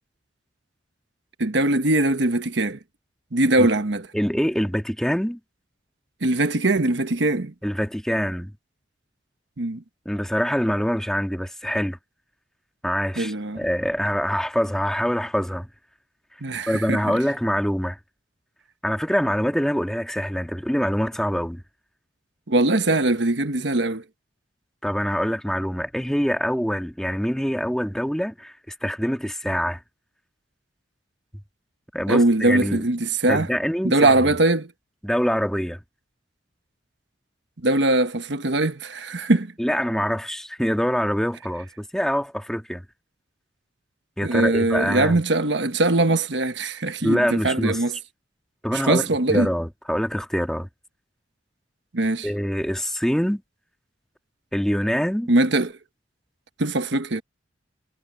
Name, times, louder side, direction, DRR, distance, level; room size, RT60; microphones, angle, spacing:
voice 1, 1.4-2.8 3.3-4.0 6.2-7.5 9.6-9.8 13.2-13.6 16.4-17.2 22.5-24.0 32.1-33.5 33.8-34.7 37.6-39.5 44.2-47.9 48.7-49.5 51.9-52.3 55.3-55.7 56.6-57.2, right 2 dB, 75° right, 1.3 m, -21 dB
voice 2, 4.1-5.4 7.6-8.5 10.0-12.0 12.8-15.7 16.7-18.0 18.8-21.6 24.8-29.8 31.9-32.9 33.3-34.3 35.0-35.8 39.6-42.8 44.2-45.2 47.0-47.8 48.6-50.7 52.2-53.4 54.5-55.3, equal, 5° left, 1.7 m, -25 dB
head